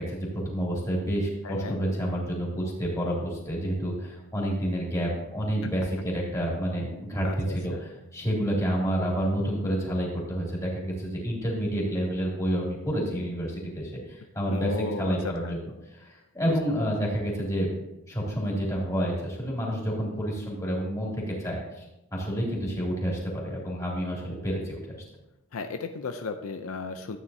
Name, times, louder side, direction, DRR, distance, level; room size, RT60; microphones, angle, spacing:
voice 1, 0.0-17.7 18.1-21.8 22.1-25.0, equal, 15° left, -4 dB, 2.7 m, -29 dB
voice 2, 1.4-1.8 7.2-7.8 14.5-15.5 25.5-27.2, left 4 dB, 75° left, 7 dB, 0.6 m, -35 dB
13.0 x 8.9 x 2.7 m, 0.91 s
head